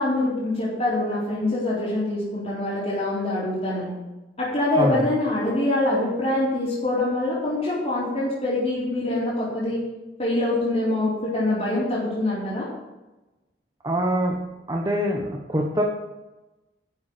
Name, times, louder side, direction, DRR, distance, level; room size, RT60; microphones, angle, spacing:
voice 1, 0.0-3.9 4.4-9.9 10.2-12.7, left 2 dB, 35° left, -9 dB, 4.2 m, -24 dB
voice 2, 4.8-5.1 13.8-14.4 14.7-15.8, equal, 20° right, 0 dB, 1.3 m, -24 dB
11.5 x 7.2 x 8.0 m, 1.1 s
head